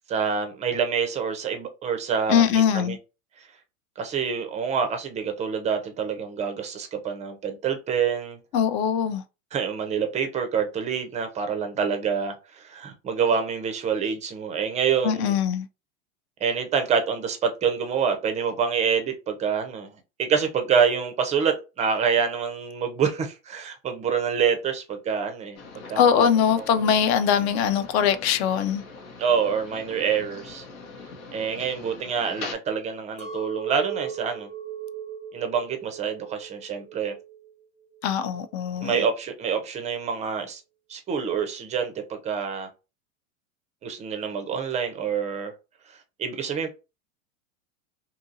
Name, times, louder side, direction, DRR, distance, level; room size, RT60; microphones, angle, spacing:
voice 1, 0.1-3.0 3.4-3.5 4.0-8.4 9.5-15.4 16.4-19.9 20.2-25.6 25.9-26.3 29.2-30.6 31.3-34.5 35.3-37.1 38.8-40.6 40.9-42.7 43.8-45.5 46.2-46.7, right 6 dB, 15° right, 0.4 m, -26 dB
voice 2, 2.3-3.0 8.5-9.2 15.0-15.7 26.0-28.8 38.0-38.9, left 8 dB, 50° left, 0.5 m, -22 dB
sound 1, 25.5-32.5, left 4 dB, 80° left, 0.9 m, -42 dB
Chink clink, 33.2-37.5 37.9-38.5, right 7 dB, 15° left, 0.7 m, -37 dB
2.8 x 2.6 x 2.6 m
hypercardioid pair, 115°, 41 cm